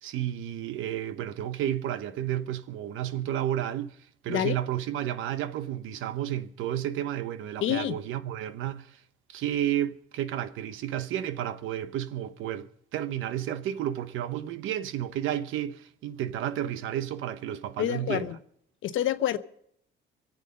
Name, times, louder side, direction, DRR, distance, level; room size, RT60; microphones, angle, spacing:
voice 1, 0.0-4.0 4.2-8.9 9.3-18.2, right 11 dB, 90° right, 0.9 m, -31 dB
voice 2, 7.6-8.0 17.8-18.4 18.8-19.4, left 11 dB, 80° left, 0.9 m, -27 dB
24.0 x 8.3 x 5.3 m
cardioid pair, 90°, 20 cm